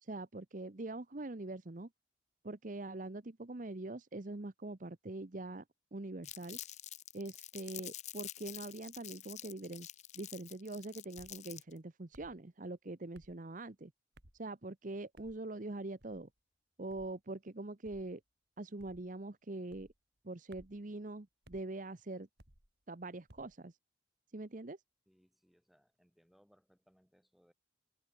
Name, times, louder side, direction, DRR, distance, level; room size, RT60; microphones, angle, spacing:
voice 1, 0.0-1.9 2.4-5.6 5.9-6.6 7.1-9.9 10.1-13.9 14.4-16.3 16.8-18.2 18.6-19.9 20.2-22.3 22.9-23.7 24.3-24.8, right 2 dB, 45° right, 0.9 m, -43 dB
Crumpling crinkling, 6.2-11.8, left 14 dB, 40° left, 0.5 m, -48 dB
sound 1, 11.2-11.4 12.1-12.4 13.1-13.4 14.1-14.4 15.2-15.4 16.0-16.3 16.9-17.2 17.8-18.1 18.8-19.1 19.7-20.0 20.5-20.8 21.4-21.7 22.4-22.7 23.3-23.6, right 1 dB, 60° right, 4.1 m, -61 dB
voice 2, 25.1-27.5, equal, ahead, 6.7 m, -70 dB
head